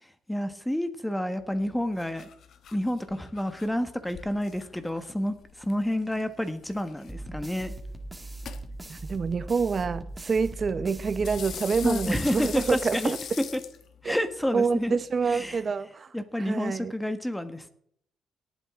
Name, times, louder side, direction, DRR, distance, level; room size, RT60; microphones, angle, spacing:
voice 1, 0.3-2.3 2.7-7.7 11.8-13.2 14.0-15.0 15.3-15.6 16.1-17.7, left 1 dB, 5° left, 1.4 m, -29 dB
sound 1, 1.4-15.6, left 8 dB, 65° left, 1.2 m, -45 dB
sound 2, 7.1-13.2, right 2 dB, 10° right, 2.1 m, -40 dB
voice 2, 8.9-13.2 14.0-14.2 14.5-16.1 16.4-16.9, right 5 dB, 40° right, 0.9 m, -27 dB
18.0 x 9.1 x 3.7 m
cardioid pair, 90°, 0 cm